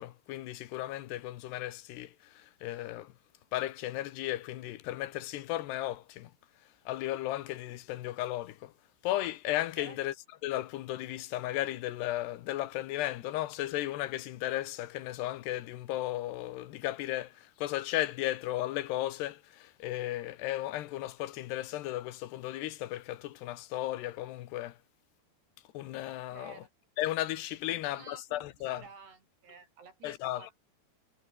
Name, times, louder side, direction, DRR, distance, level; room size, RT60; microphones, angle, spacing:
voice 1, 0.0-3.1 3.5-6.3 6.9-8.7 9.0-10.1 10.4-24.8 25.7-26.5 27.0-28.8 30.0-30.5, left 15 dB, 85° left, 3.3 m, -35 dB
voice 2, 26.3-26.7 27.7-30.6, right 5 dB, 80° right, 8.1 m, -52 dB
omnidirectional pair, 4.7 m